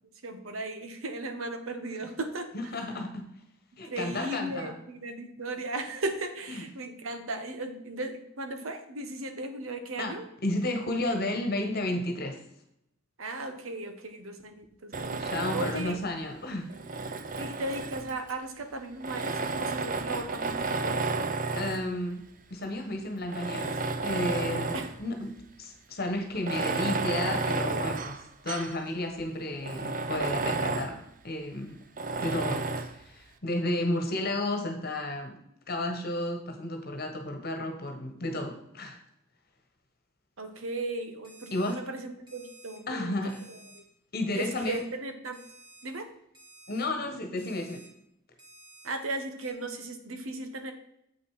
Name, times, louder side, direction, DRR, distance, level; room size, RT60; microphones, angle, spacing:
voice 1, 0.2-2.5 3.8-10.3 13.2-15.2 15.5-16.0 17.4-21.0 24.7-24.9 40.4-43.2 43.5-43.8 44.3-45.4 45.8-46.1 48.8-50.7, right 2 dB, 90° right, 7 dB, 1.3 m, -36 dB
voice 2, 2.5-3.3 3.8-4.7 10.0-12.4 15.2-16.7 17.4-17.5 21.5-22.2 22.5-31.8 32.2-35.4 35.7-39.0 41.5-41.8 42.9-43.4 44.1-44.8 46.7-47.8, left 1 dB, 50° left, 4 dB, 1.3 m, -32 dB
Tools, 14.9-16.0 16.7-18.3 19.0-21.9 22.6-22.7 23.3-25.0 25.4-25.5 26.3-28.8 29.2-29.3 29.6-31.0 32.0-33.0, right 3 dB, 40° right, 0.6 m, -32 dB
Alarm, 41.2-41.8 42.3-42.8 43.3-43.8 44.3-44.8 45.3-45.8 46.3-46.8 47.4-47.9 48.4-48.9 49.4-49.5, right 2 dB, 20° right, 2.3 m, -53 dB
8.0 x 6.1 x 4.8 m, 0.77 s
head